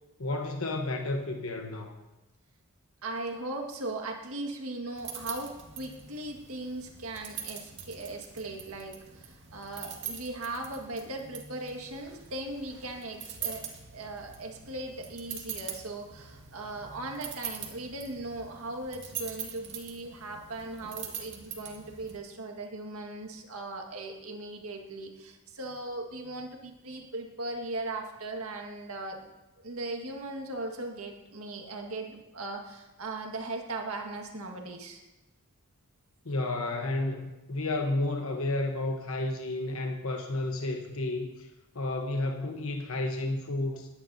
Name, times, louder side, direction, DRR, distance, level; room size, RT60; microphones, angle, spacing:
voice 1, 0.2-2.0 36.2-41.5 41.7-43.9, left 2 dB, 70° left, 3 dB, 1.1 m, -31 dB
voice 2, 3.0-29.3 29.6-35.0, right 2 dB, 80° right, 3 dB, 1.8 m, -38 dB
sound 1, 4.9-22.2, right 8 dB, 55° right, 2.1 m, -43 dB
sound 2, 13.3-18.4, right 2 dB, 5° right, 3.4 m, -58 dB
21.0 x 10.0 x 2.8 m, 1.0 s
head